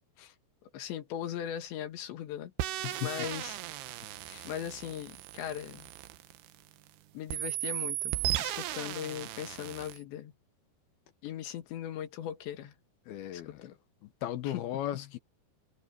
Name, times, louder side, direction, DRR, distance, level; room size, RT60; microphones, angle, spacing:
voice 1, 0.7-3.6 4.5-5.9 7.1-10.3 11.2-12.7 13.3-13.8 14.5-14.6, left 10 dB, 90° left, 4.1 m, -39 dB
sound 1, 2.6-6.9 7.3-10.0, right 14 dB, 80° right, 2.9 m, -36 dB
voice 2, 2.8-3.3 4.3-4.5 13.1-13.6 14.0-15.2, left 12 dB, 70° left, 2.7 m, -37 dB
omnidirectional pair, 5.0 m